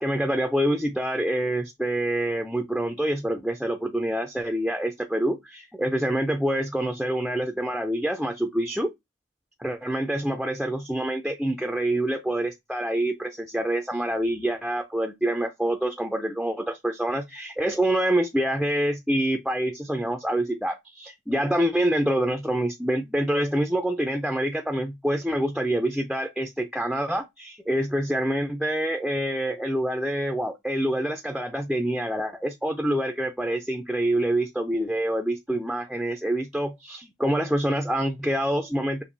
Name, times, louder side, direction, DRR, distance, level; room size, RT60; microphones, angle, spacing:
voice 1, 0.0-8.9 9.6-39.0, right 1 dB, ahead, 0.4 m, -26 dB
6.9 x 2.7 x 2.6 m
head